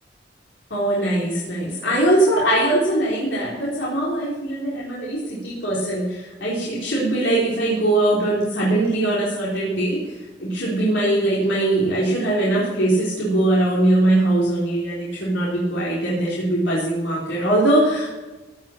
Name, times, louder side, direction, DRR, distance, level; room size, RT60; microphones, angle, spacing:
voice 1, 0.7-18.1, right 1 dB, 85° left, -7 dB, 3.9 m, -21 dB
16.5 x 6.1 x 7.3 m, 1.2 s
head